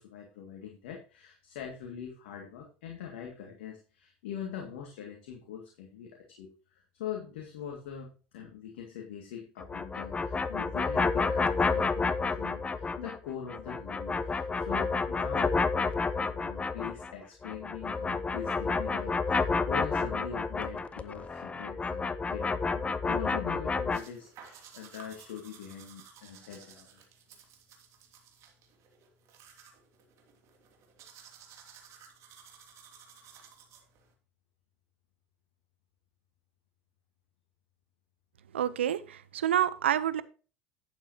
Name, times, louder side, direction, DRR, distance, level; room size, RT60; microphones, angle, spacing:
voice 1, 0.0-15.6 15.8-27.0, left 8 dB, 80° left, 2.2 m, -43 dB
sound 1, 9.6-13.2 13.5-17.1 17.4-24.0, left 4 dB, 20° left, 0.9 m, -30 dB
sound 2, 23.9-34.1, right 7 dB, 55° right, 2.9 m, -55 dB
voice 2, 38.5-40.2, right 10 dB, 90° right, 0.7 m, -28 dB
11.0 x 8.9 x 2.9 m
hypercardioid pair, 80°, 6 cm